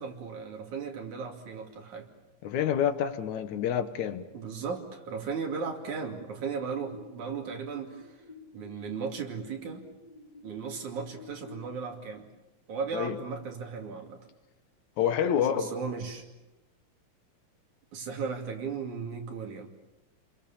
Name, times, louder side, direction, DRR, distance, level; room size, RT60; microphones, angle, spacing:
voice 1, 0.0-2.1 4.3-8.2 8.5-9.9 10.4-12.3 12.7-14.2 15.4-16.3 17.9-19.7, right 5 dB, 80° right, 4.0 m, -36 dB
voice 2, 2.4-4.3 12.9-13.2 15.0-15.8, left 9 dB, 75° left, 2.5 m, -28 dB
sound 1, 6.6-11.6, left 3 dB, 15° left, 3.5 m, -52 dB
29.0 x 22.5 x 7.2 m
omnidirectional pair, 3.4 m